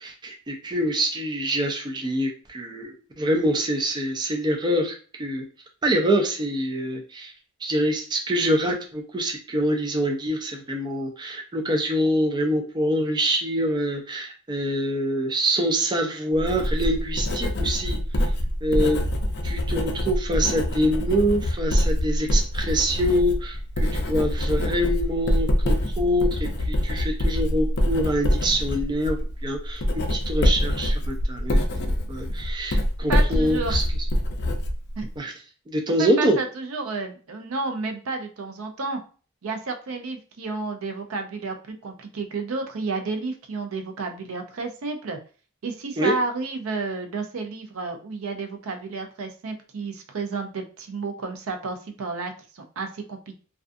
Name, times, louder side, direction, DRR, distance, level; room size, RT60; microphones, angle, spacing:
voice 1, 0.0-4.9 5.2-5.4 5.8-7.3 7.6-18.0 18.6-19.0 19.4-23.6 23.9-29.8 30.1-31.6 31.8-33.8 35.2-35.3 35.7-36.4 46.0-46.2, equal, 20° right, 2 dB, 0.4 m, -25 dB
Writing, 16.3-35.2, left 1 dB, 55° left, 0.5 m, -25 dB
voice 2, 33.1-33.8 35.0-35.1 36.0-39.0 39.4-41.6 41.8-45.2 45.6-53.4, right 3 dB, 80° right, 5 dB, 0.5 m, -31 dB
2.4 x 2.3 x 2.5 m, 0.38 s
head